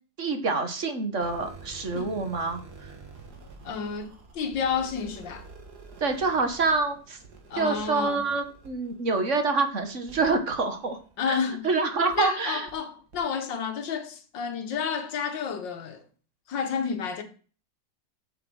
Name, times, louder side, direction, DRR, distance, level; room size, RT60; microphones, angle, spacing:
voice 1, 0.2-2.6 6.0-7.2 7.6-11.0 11.3-11.4 11.6-12.7, right 3 dB, 45° right, 1.5 m, -26 dB
sound 1, 1.1-11.5 12.1-12.2 12.7-12.8 13.1-13.2, right 4 dB, 60° right, 2.5 m, -48 dB
voice 2, 3.6-5.5 7.5-8.2 11.2-11.8 12.1-16.0 16.5-17.2, left 6 dB, 85° left, 2.1 m, -30 dB
7.6 x 7.3 x 6.3 m
omnidirectional pair, 1.9 m